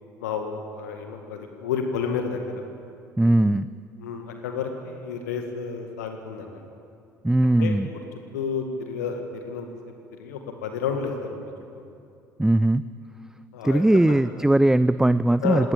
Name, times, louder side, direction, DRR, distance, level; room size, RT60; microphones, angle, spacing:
voice 1, 0.2-2.6 4.0-6.6 7.6-7.8 8.3-9.7 10.2-11.5 13.5-14.2 15.4-15.7, left 6 dB, 70° left, 5 dB, 1.9 m, -31 dB
voice 2, 3.2-3.7 7.2-7.9 12.4-12.8 13.6-15.7, right 1 dB, 5° right, 16 dB, 0.5 m, -19 dB
19.5 x 19.0 x 9.1 m, 2.5 s
figure-of-eight pair, 55°, 9 cm